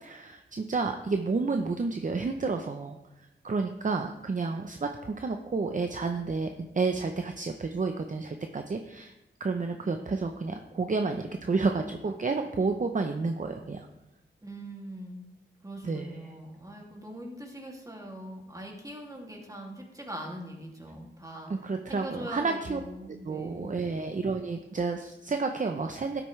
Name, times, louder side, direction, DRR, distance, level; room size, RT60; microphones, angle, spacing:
voice 1, 0.0-3.0 3.4-9.1 9.4-13.9 15.8-16.1 21.5-22.8 23.1-26.2, right 4 dB, 40° right, 5 dB, 0.7 m, -30 dB
voice 2, 14.4-15.2 15.6-21.5 21.9-23.7, right 1 dB, 15° right, 0 dB, 2.4 m, -42 dB
12.5 x 8.9 x 3.2 m, 0.95 s
wide cardioid pair, 75°, 19 cm